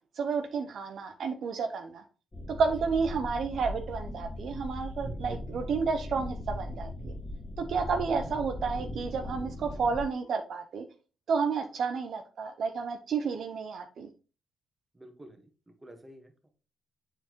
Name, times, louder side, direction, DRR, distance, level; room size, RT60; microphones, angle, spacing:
voice 1, 0.1-2.0 2.6-7.1 7.6-10.9 11.3-14.1, right 5 dB, 65° right, 6 dB, 0.6 m, -31 dB
sound 1, 2.3-10.0, left 1 dB, 25° left, 1.7 m, -39 dB
voice 2, 14.9-16.5, equal, 20° right, 5 dB, 1.5 m, -51 dB
7.2 x 4.5 x 3.0 m, 0.34 s
supercardioid pair, 65°, 0 cm